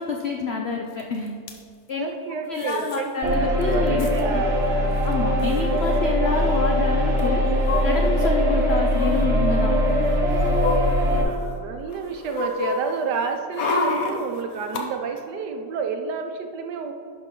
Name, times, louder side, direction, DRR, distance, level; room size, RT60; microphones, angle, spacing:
voice 1, 0.0-1.4 1.9-2.1 2.5-4.1 4.3-4.4 5.0-7.4 7.8-9.8, left 5 dB, 75° left, 2 dB, 0.5 m, -27 dB
sound 1, 1.0-1.1 1.3-1.6 2.6-3.0 3.3-3.4 3.6-4.2 5.1-5.2 5.4-5.6 7.2-8.3 8.9-9.3 9.9-11.5 11.9-14.8 15.2-15.3, left 3 dB, 60° left, 1.2 m, -29 dB
voice 2, 1.9-3.1 3.6-5.0 11.0-16.9, right 6 dB, 75° right, 5 dB, 1.3 m, -30 dB
sound 2, 3.2-11.2, equal, 45° right, 1.1 m, -21 dB
10.5 x 5.9 x 3.8 m, 2.3 s
omnidirectional pair, 1.9 m